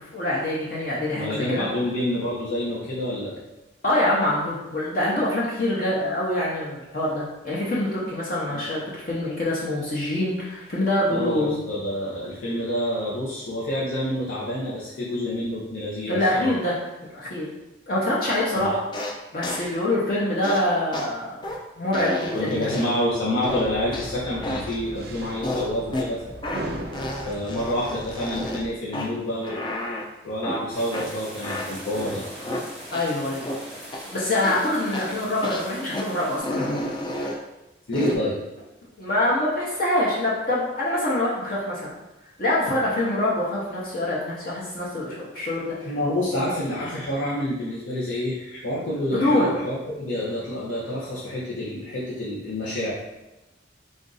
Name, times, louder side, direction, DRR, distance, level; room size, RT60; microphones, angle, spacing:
voice 1, 0.0-1.6 3.8-11.6 16.1-16.7 17.1-17.5 17.9-18.8 19.3-21.4 21.8-22.8 32.9-33.5 34.0-36.9 39.0-41.9 42.4-45.9 49.1-49.5, left 1 dB, 50° left, -7 dB, 0.8 m, -25 dB
voice 2, 1.1-3.4 8.5-8.6 11.1-16.5 18.5-18.7 22.3-26.4 27.3-29.6 30.2-32.2 37.9-38.4 45.8-52.9, left 1 dB, 90° left, -8 dB, 0.8 m, -28 dB
sound 1, 18.9-19.1 19.4-19.7 20.4-20.6 20.9-21.1 21.4-21.6 21.9-23.0 23.4-24.1 24.4-24.8 25.4-26.1 26.4-26.6 26.9-28.6 28.9-29.1 29.4-30.0 30.4-30.6 30.9-31.0 31.4-32.6 32.9-33.0 33.4-33.6 33.9-34.1 34.4-34.7 34.9-35.1 35.4-35.7 35.9-36.0 36.4-37.4 37.9-38.2, left 1 dB, 25° left, 0.4 m, -31 dB
sound 2, 23.4-28.7, right 1 dB, 55° right, 0.5 m, -38 dB
sound 3, 30.7-36.4, equal, ahead, 1.0 m, -41 dB
3.6 x 2.5 x 3.9 m, 1.0 s
head